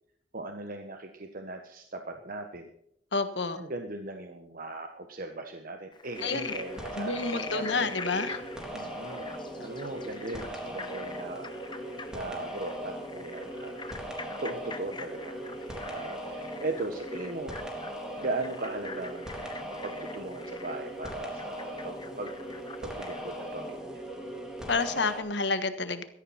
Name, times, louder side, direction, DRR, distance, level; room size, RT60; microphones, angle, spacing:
voice 1, 0.3-2.7 3.5-7.9 8.7-9.3 9.6-13.7 14.4-15.4 15.7-17.6 18.2-19.4 19.8-22.3 22.8-24.0, right 2 dB, 55° right, 5 dB, 1.3 m, -38 dB
voice 2, 3.1-3.6 6.2-6.5 7.0-8.4 24.7-26.0, left 4 dB, 70° left, 10 dB, 1.4 m, -29 dB
Frog, 5.9-23.4, left 4 dB, 25° left, 1.1 m, -44 dB
sound 1, 6.1-25.2, right 1 dB, 5° right, 3.6 m, -39 dB
16.5 x 13.5 x 4.3 m, 0.71 s
head